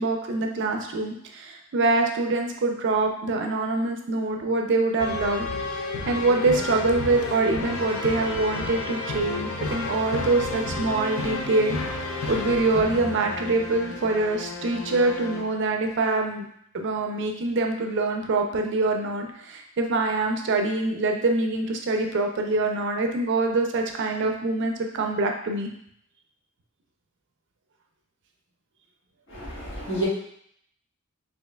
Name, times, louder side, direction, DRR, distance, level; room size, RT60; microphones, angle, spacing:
voice 1, 0.0-5.5 6.1-11.8 12.3-16.5 16.7-25.7, right 2 dB, 55° right, 3 dB, 0.4 m, -25 dB
sound 1, 5.0-15.5, left 2 dB, 85° left, 0.6 m, -32 dB
voice 2, 29.3-30.0, right 2 dB, 60° left, -8 dB, 1.5 m, -30 dB
4.4 x 2.8 x 2.2 m, 0.69 s
head